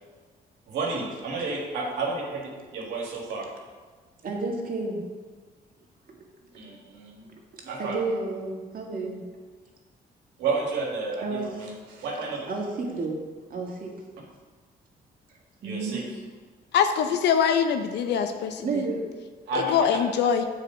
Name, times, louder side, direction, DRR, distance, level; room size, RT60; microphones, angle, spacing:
voice 1, 0.7-3.5 6.5-7.3 7.7-8.0 10.4-12.4 15.6-16.0 19.5-19.9, right 3 dB, 90° right, -2 dB, 1.7 m, -31 dB
voice 2, 4.2-5.0 6.1-6.2 6.7-6.8 7.5-9.2 11.2-11.5 12.5-13.2 13.5-13.9 15.6-16.0 18.0-19.1, right 3 dB, 55° right, -1 dB, 1.9 m, -31 dB
voice 3, 16.7-18.6 19.7-20.4, left 7 dB, 80° left, 8 dB, 0.6 m, -23 dB
7.6 x 4.9 x 6.2 m, 1.4 s
cardioid pair, 75°, 17 cm